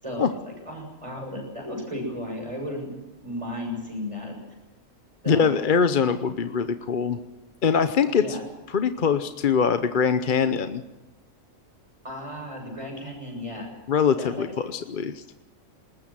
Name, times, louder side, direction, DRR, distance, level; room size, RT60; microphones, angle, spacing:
voice 1, 0.0-2.9 3.2-4.3 5.2-5.5 8.1-8.4 12.0-13.7 14.2-14.5, left 1 dB, 20° right, 2 dB, 7.1 m, -34 dB
voice 2, 5.3-7.2 7.6-8.4 8.7-10.8 13.9-15.2, left 6 dB, 45° left, 10 dB, 0.8 m, -23 dB
20.0 x 20.0 x 7.5 m, 1.1 s
omnidirectional pair, 1.4 m